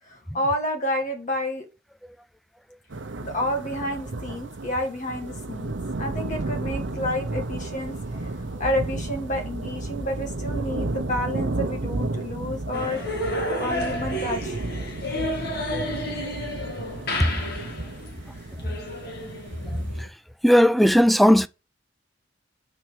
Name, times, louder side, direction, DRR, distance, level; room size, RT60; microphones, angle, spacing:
voice 1, 0.1-1.7 3.2-5.7 6.0-13.0 13.6-14.6, left 1 dB, 45° left, 1.9 m, -29 dB
sound 1, 2.9-20.0, right 2 dB, 75° right, 0.8 m, -33 dB
sound 2, 12.7-20.1, left 1 dB, 60° left, 2.0 m, -31 dB
voice 2, 20.4-21.5, equal, ahead, 0.4 m, -17 dB
6.0 x 4.6 x 6.4 m
head